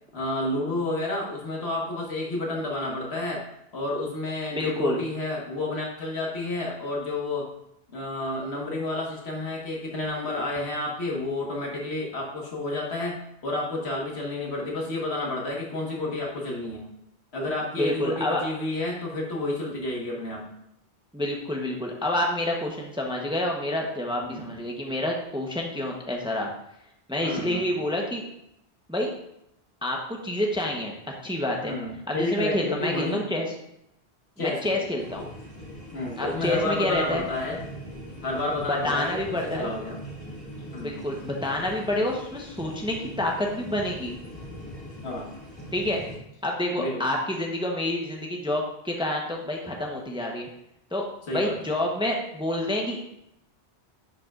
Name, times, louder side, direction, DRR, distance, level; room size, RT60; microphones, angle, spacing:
voice 1, 0.1-3.4 3.7-7.5 7.9-16.8 17.3-20.5 24.2-24.6 27.2-27.6 31.6-33.2 34.4-35.0 35.9-37.6 38.2-40.0 40.7-40.9 45.0-45.3 46.8-47.1 51.3-51.6, left 2 dB, 75° left, -2 dB, 1.8 m, -30 dB
voice 2, 4.5-5.0 17.8-18.4 21.1-26.5 27.1-28.3 28.9-29.1 29.8-30.9 31.2-31.7 32.1-33.5 34.4-35.2 36.2-37.3 38.7-39.7 40.8-44.2 45.7-46.0 46.4-50.5 50.9-51.0 51.3-53.0, left 1 dB, 5° right, 0 dB, 0.8 m, -28 dB
sound 1, 35.0-46.2, equal, 30° left, 2.0 m, -41 dB
10.5 x 5.6 x 2.5 m, 0.79 s
omnidirectional pair, 1.1 m